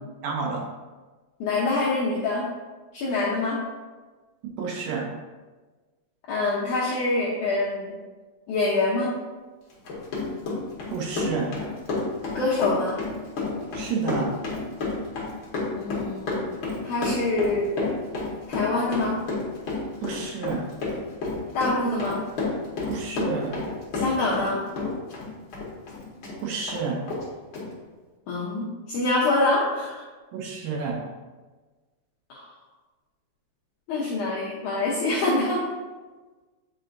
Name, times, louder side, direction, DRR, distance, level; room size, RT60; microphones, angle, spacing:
voice 1, 0.2-0.6 4.4-5.1 10.9-11.5 13.7-14.3 20.0-20.6 22.9-23.6 26.4-27.0 30.3-31.0, right 5 dB, 75° right, -2 dB, 2.2 m, -29 dB
voice 2, 1.4-2.5 2.9-3.6 6.3-8.0 8.5-9.1 12.3-13.0 15.8-16.5 16.8-17.7 18.5-19.2 21.5-22.2 23.9-24.6 28.3-29.9 32.3-32.4 33.9-35.6, left 2 dB, 90° left, -5 dB, 1.7 m, -25 dB
Run, 9.7-24.5 24.8-26.4 26.7-26.8 27.1-27.2 27.5-27.6, left 3 dB, 65° left, 1.2 m, -30 dB
8.8 x 4.8 x 2.6 m, 1.3 s
omnidirectional pair, 4.8 m